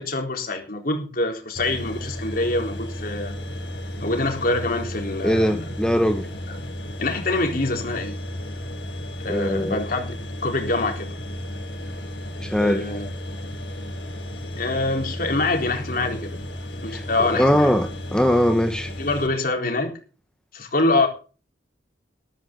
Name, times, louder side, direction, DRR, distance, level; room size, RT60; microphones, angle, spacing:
voice 1, 0.0-3.4 4.0-5.6 7.0-8.2 9.2-10.2 10.4-11.1 12.6-13.1 14.6-16.4 16.8-17.7 19.0-19.9 20.5-21.1, left 2 dB, 50° left, 3.9 m, -25 dB
sound 1, 1.6-19.3, equal, 75° left, 3.5 m, -34 dB
voice 2, 5.2-6.3 9.3-9.8 12.4-12.8 16.9-18.9, equal, 5° left, 1.0 m, -21 dB
13.5 x 12.5 x 3.9 m
head